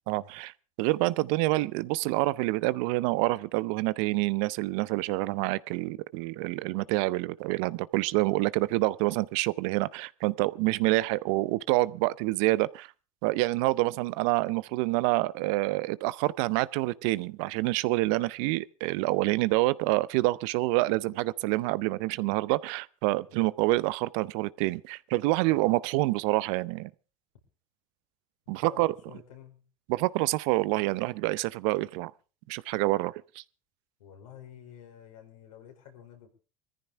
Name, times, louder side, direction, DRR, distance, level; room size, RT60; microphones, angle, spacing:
voice 1, 0.1-0.5 0.8-12.9 13.2-26.9 28.5-28.9 29.9-32.1 32.5-33.4, right 20 dB, 70° right, 0.6 m, -27 dB
voice 2, 28.5-29.7 34.0-36.3, left 9 dB, 80° left, 4.9 m, -50 dB
21.5 x 14.5 x 3.5 m
hypercardioid pair, 75°, 17 cm